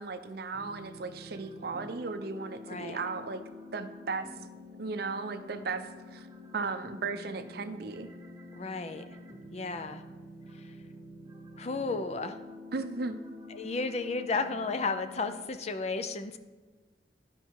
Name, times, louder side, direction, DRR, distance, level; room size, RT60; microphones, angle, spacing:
voice 1, 0.0-3.4 3.7-4.3 4.8-5.8 6.1-6.3 6.5-8.1 12.7-13.2, right 4 dB, 55° right, 10 dB, 0.5 m, -36 dB
sound 1, 0.5-15.5, left 2 dB, 20° right, 0.9 m, -48 dB
voice 2, 2.7-3.0 8.5-9.2 9.5-10.0 10.5-10.8 11.6-12.4 13.5-16.4, left 3 dB, 35° left, 9 dB, 0.5 m, -33 dB
11.0 x 5.3 x 4.6 m, 1.3 s
head